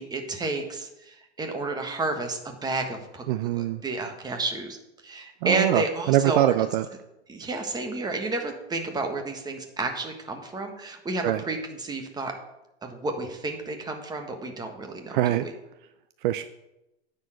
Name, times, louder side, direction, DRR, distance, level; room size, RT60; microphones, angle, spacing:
voice 1, 0.0-3.2 3.5-4.8 5.0-6.5 7.3-12.3 12.8-15.5, right 3 dB, 10° right, 4 dB, 1.4 m, -31 dB
voice 2, 3.3-3.8 5.4-6.9 11.2-11.4 15.1-15.5 16.2-16.4, right 13 dB, 55° right, 11 dB, 0.6 m, -23 dB
9.6 x 4.6 x 7.7 m, 0.91 s
hypercardioid pair, 125°, 31 cm